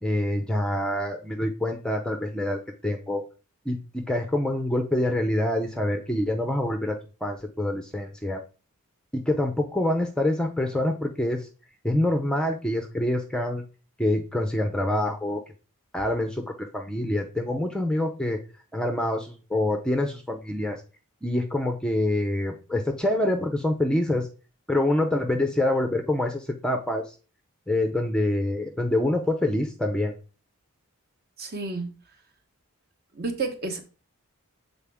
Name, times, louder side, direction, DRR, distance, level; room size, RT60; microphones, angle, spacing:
voice 1, 0.0-3.2 3.7-8.4 9.1-11.5 11.8-13.6 14.0-15.4 15.9-18.4 18.7-20.8 21.2-24.3 24.7-27.1 27.7-30.1, left 1 dB, 5° left, 0.5 m, -26 dB
voice 2, 31.4-31.9 33.1-33.8, right 3 dB, 45° right, 1.1 m, -30 dB
7.2 x 4.1 x 3.5 m
head